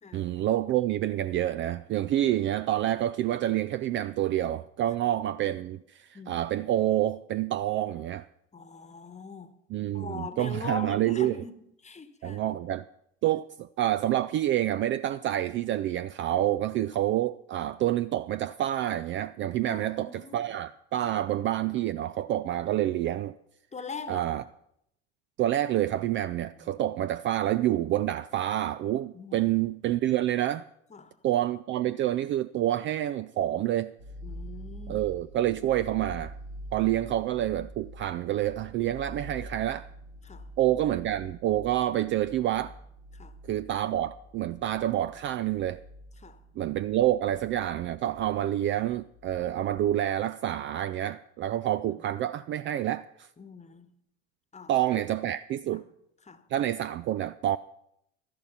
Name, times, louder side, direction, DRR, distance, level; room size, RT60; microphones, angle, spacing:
voice 1, 0.1-8.3 9.7-11.4 12.2-12.8 13.2-23.3 24.1-24.4 25.4-30.6 31.2-33.9 34.9-36.4 36.7-39.9 40.6-42.7 43.5-45.8 46.6-53.3 54.7-55.8 56.5-57.6, right 13 dB, 35° right, 0.4 m, -28 dB
voice 2, 8.5-9.6 9.9-12.4 19.6-20.5 21.1-21.2 23.7-24.2 26.6-26.8 29.1-29.5 30.9-31.1 34.2-35.1 40.2-40.5 43.1-43.3 46.2-46.4 53.4-53.9 54.5-55.0 55.7-55.8 56.2-56.4, left 4 dB, 20° left, 1.2 m, -42 dB
sound 1, 34.0-50.1, equal, 80° right, 2.8 m, -46 dB
13.0 x 11.0 x 5.6 m
figure-of-eight pair, 65°, 35 cm